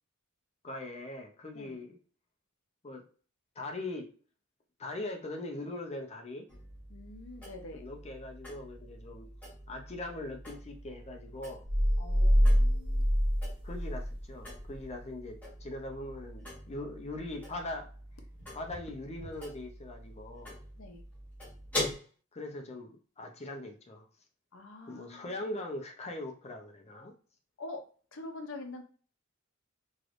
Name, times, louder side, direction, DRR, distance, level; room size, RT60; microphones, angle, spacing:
voice 1, 0.6-2.0 2.8-3.1 3.6-4.1 4.8-6.5 7.7-9.3 9.7-11.6 13.6-17.9 18.5-20.6 22.3-24.1 24.9-27.1, left 2 dB, 30° left, 0.6 m, -41 dB
sound 1, 6.5-21.9, left 1 dB, 10° left, 1.4 m, -44 dB
voice 2, 6.9-7.8 12.0-13.1 20.8-21.0 24.5-25.5 27.6-27.8 28.1-28.8, left 2 dB, 65° left, 0.7 m, -45 dB
sound 2, 11.7-14.2 14.6-14.7, equal, 30° right, 0.7 m, -25 dB
3.3 x 3.1 x 2.5 m
head